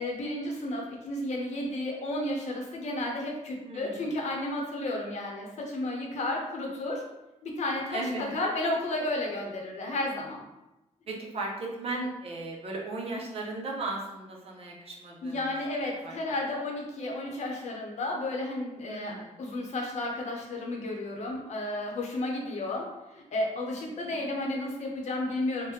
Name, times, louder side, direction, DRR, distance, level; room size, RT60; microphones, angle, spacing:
voice 1, 0.0-7.0 7.4-8.0 8.3-10.4 15.2-25.7, left 1 dB, 65° left, 0 dB, 0.7 m, -32 dB
voice 2, 3.6-4.0 7.9-8.3 11.1-15.4 16.0-16.1 16.4-16.5 18.8-19.3 24.0-24.3, right 2 dB, 50° right, -1 dB, 0.7 m, -36 dB
3.2 x 2.1 x 3.1 m, 0.96 s
wide cardioid pair, 120°, 13 cm